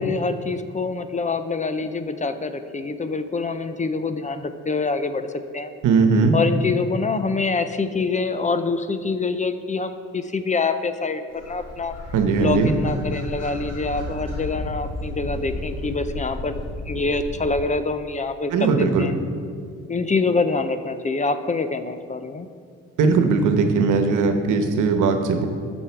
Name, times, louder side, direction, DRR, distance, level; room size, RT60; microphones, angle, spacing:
voice 1, 0.0-5.3 5.5-5.7 6.3-11.9 12.4-19.1 19.9-22.5, left 3 dB, 25° left, 10 dB, 0.6 m, -25 dB
voice 2, 5.8-6.3 12.1-12.7 18.5-19.1 23.0-25.5, right 4 dB, 85° right, 6 dB, 1.1 m, -19 dB
sound 1, 11.3-17.5, left 2 dB, 55° left, 2.2 m, -33 dB
12.5 x 6.2 x 4.6 m, 2.2 s
cardioid pair, 90°, 30 cm